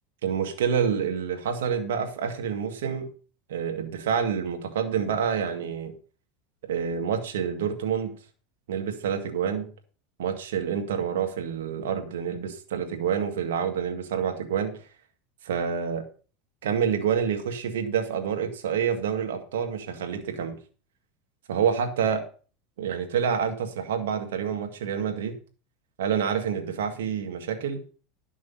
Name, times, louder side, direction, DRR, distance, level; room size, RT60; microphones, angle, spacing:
voice 1, 0.2-3.1 3.5-5.9 6.7-8.1 8.7-9.7 10.2-14.8 15.4-16.1 16.6-20.6 21.5-22.2 22.8-25.3 26.0-27.8, right 7 dB, 90° right, 5 dB, 2.0 m, -28 dB
11.5 x 6.2 x 5.6 m, 0.39 s
supercardioid pair, 120°, 0 cm